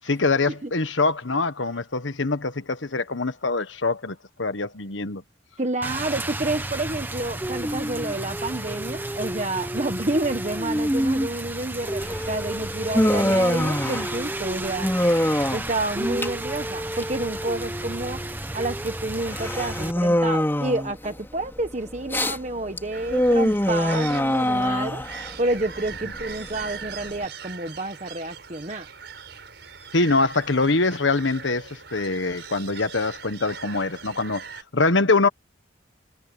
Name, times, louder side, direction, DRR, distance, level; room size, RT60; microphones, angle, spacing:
voice 1, 0.1-5.2 29.9-35.3, left 3 dB, 80° left, 1.4 m, -24 dB
voice 2, 5.6-14.9 15.5-18.2 18.5-25.0 25.4-28.9, right 2 dB, 35° right, 1.3 m, -29 dB
Rain, 5.8-19.9, right 1 dB, 10° right, 1.4 m, -31 dB
Human voice, 12.0-27.2, left 1 dB, 10° left, 4.0 m, -25 dB
sound 1, 22.9-34.6, right 6 dB, 60° right, 5.4 m, -41 dB
head